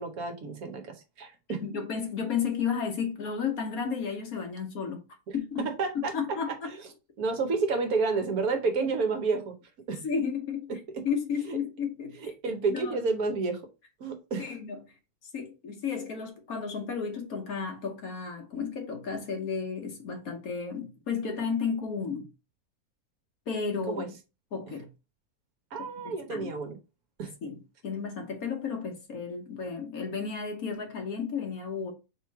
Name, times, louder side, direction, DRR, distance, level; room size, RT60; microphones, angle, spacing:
voice 1, 0.0-1.6 5.3-6.8 7.2-9.5 9.9-10.1 10.7-11.0 11.5-11.6 12.2-13.6 14.0-14.6 23.9-24.1 25.7-26.8 27.2-27.3, right 4 dB, 70° right, 1.4 m, -30 dB
voice 2, 1.6-5.0 5.3-5.6 5.9-6.5 8.8-8.9 10.0-10.7 11.0-12.3 12.7-13.0 14.4-14.8 15.3-22.3 23.5-24.1 24.5-24.9 25.8-26.5 27.4-31.9, left 6 dB, 65° left, 1.5 m, -33 dB
3.6 x 3.1 x 4.7 m
omnidirectional pair, 1.6 m